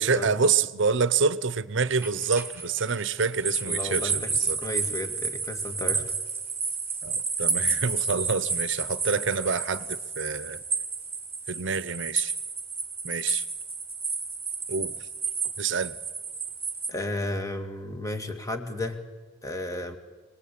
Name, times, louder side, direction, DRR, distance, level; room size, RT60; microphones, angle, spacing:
voice 1, 0.0-4.6 5.9-6.0 7.0-10.6 11.5-12.3 13.0-13.4 14.7-15.0 15.6-16.0, right 5 dB, 65° right, 0.8 m, -27 dB
sound 1, 1.9-16.9, right 4 dB, 10° right, 2.0 m, -31 dB
voice 2, 3.7-4.3 4.6-6.0 16.9-19.0 19.4-20.0, left 1 dB, 15° left, 2.1 m, -33 dB
26.0 x 20.0 x 8.6 m
head